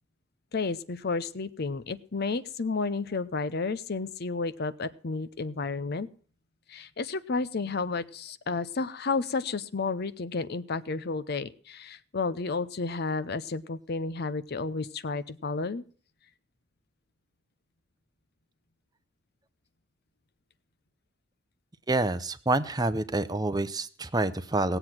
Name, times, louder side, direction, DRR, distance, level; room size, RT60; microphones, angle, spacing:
voice 1, 0.5-6.1 6.7-15.8, left 4 dB, 50° left, 15 dB, 0.7 m, -31 dB
voice 2, 21.9-24.8, right 2 dB, 20° right, 12 dB, 0.7 m, -27 dB
18.5 x 8.0 x 5.9 m, 0.43 s
head